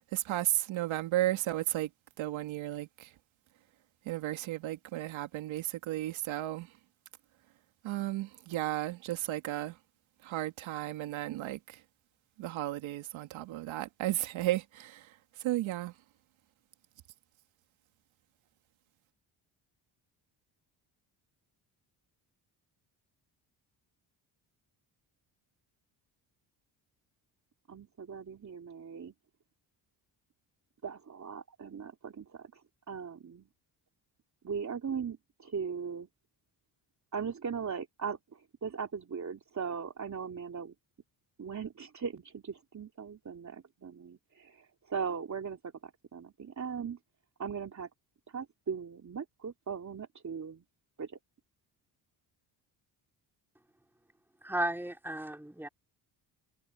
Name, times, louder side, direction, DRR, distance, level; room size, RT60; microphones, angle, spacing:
voice 1, 0.1-1.9 2.2-3.1 4.1-6.7 7.8-9.8 10.2-11.8 12.4-15.9, right 15 dB, 85° right, 2.1 m, -34 dB
voice 2, 27.7-29.1 30.8-33.5 34.4-36.1 37.1-40.7 41.4-47.0 47.4-47.9 48.3-50.6 51.0-51.2, right 6 dB, 40° right, 3.0 m, -39 dB
voice 3, 54.4-55.7, right 1 dB, 5° right, 3.7 m, -34 dB
cardioid pair, 80°, 46 cm